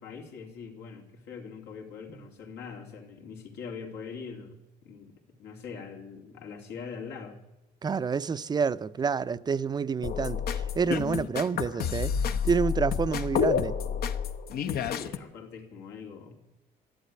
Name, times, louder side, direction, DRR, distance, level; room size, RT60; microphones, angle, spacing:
voice 1, 0.0-7.4 14.6-16.3, left 6 dB, 85° left, 2.8 m, -42 dB
voice 2, 7.8-12.1 12.4-13.8, right 5 dB, 25° right, 0.5 m, -28 dB
sound 1, 10.0-15.2, left 7 dB, 65° left, 0.9 m, -29 dB
12.5 x 11.5 x 9.5 m
cardioid pair, 110°, 17 cm